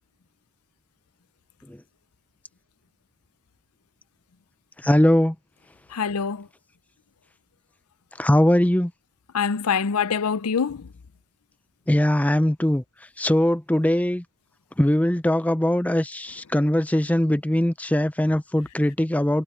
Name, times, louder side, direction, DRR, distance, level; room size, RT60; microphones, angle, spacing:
voice 1, 4.8-5.3 8.2-8.9 11.9-12.8 13.2-14.2 14.8-19.4, left 1 dB, 5° left, 0.5 m, -21 dB
voice 2, 5.9-6.5 9.3-10.9, left 6 dB, 85° left, 0.6 m, -24 dB
head